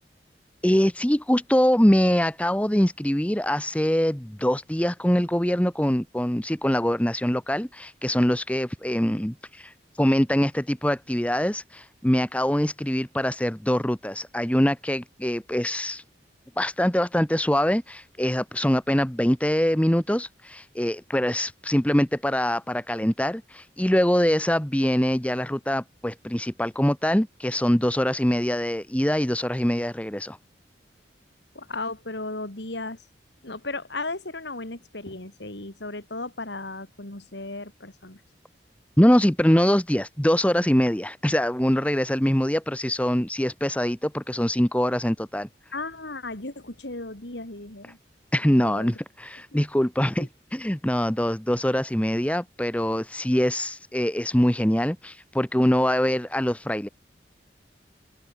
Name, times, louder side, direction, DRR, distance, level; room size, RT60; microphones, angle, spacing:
voice 1, 0.6-16.0 16.6-30.4 39.0-45.5 48.3-56.9, equal, 5° left, 1.0 m, -23 dB
voice 2, 31.5-33.0 33.4-38.2 45.7-48.0 48.6-49.0 50.2-50.3, left 2 dB, 75° left, 3.4 m, -35 dB
open air
head